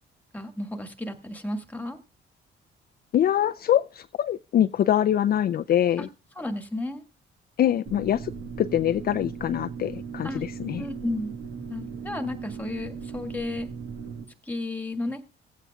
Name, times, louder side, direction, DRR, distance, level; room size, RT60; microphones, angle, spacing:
voice 1, 0.3-2.0 6.0-6.1 6.3-7.0 10.2-10.4 10.8-11.3 11.7-13.7 14.4-15.2, left 2 dB, 10° left, 1.7 m, -33 dB
voice 2, 3.1-6.1 7.6-8.3 8.6-10.8, left 11 dB, 50° left, 0.4 m, -24 dB
sound 1, 7.9-14.2, right 6 dB, 80° right, 1.9 m, -38 dB
17.5 x 8.3 x 2.3 m
cardioid pair, 90°, 20 cm